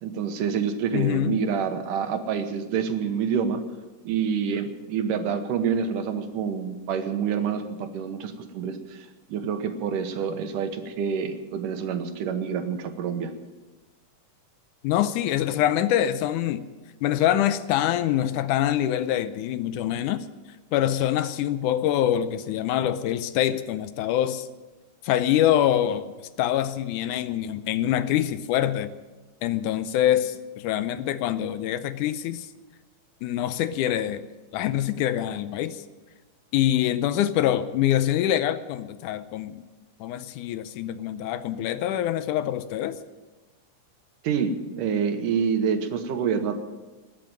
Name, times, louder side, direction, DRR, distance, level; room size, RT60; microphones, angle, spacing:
voice 1, 0.0-3.6 4.0-13.3 44.2-46.6, right 6 dB, 80° right, 7 dB, 2.7 m, -27 dB
voice 2, 0.9-1.4 14.8-16.7 17.0-20.3 20.7-24.5 25.0-26.1 26.4-28.9 29.4-32.5 33.2-34.3 34.5-35.8 36.5-39.6 40.0-43.0, left 11 dB, 80° left, 12 dB, 2.1 m, -25 dB
19.0 x 7.6 x 8.9 m, 1.2 s
omnidirectional pair, 3.7 m